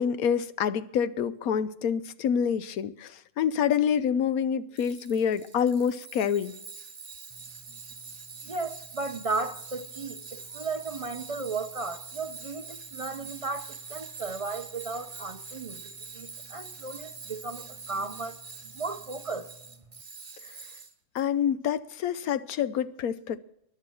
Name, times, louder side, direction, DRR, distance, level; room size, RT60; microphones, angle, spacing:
voice 1, 0.0-6.5 21.1-23.4, left 8 dB, 70° left, 1.1 m, -27 dB
Tools, 4.8-21.2, right 4 dB, 30° right, 0.8 m, -45 dB
voice 2, 8.4-19.5, right 4 dB, 50° right, 0.4 m, -35 dB
14.0 x 10.5 x 6.2 m
omnidirectional pair, 1.6 m